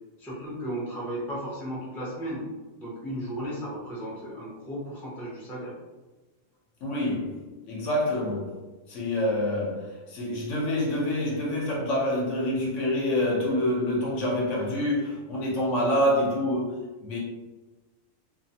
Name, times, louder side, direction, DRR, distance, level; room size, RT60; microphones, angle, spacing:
voice 1, 0.2-2.4 2.8-5.7, right 1 dB, ahead, -7 dB, 0.5 m, -35 dB
voice 2, 6.8-7.4 7.7-8.6 8.9-17.2, left 1 dB, 65° left, -4 dB, 1.1 m, -27 dB
2.8 x 2.0 x 2.7 m, 1.2 s
omnidirectional pair, 1.4 m